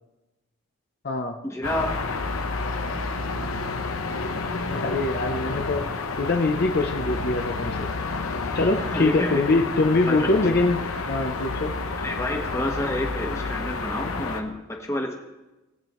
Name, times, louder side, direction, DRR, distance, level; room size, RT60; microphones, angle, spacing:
voice 1, 1.4-1.9 8.8-9.6 10.1-10.3 12.0-15.1, left 1 dB, 15° left, 1 dB, 1.2 m, -29 dB
sound 1, 1.6-14.4, left 3 dB, 85° left, 1.0 m, -30 dB
voice 2, 4.7-7.9 8.5-10.8 11.1-11.7, left 2 dB, 45° left, 3 dB, 0.7 m, -23 dB
18.5 x 8.9 x 3.1 m, 1.0 s
head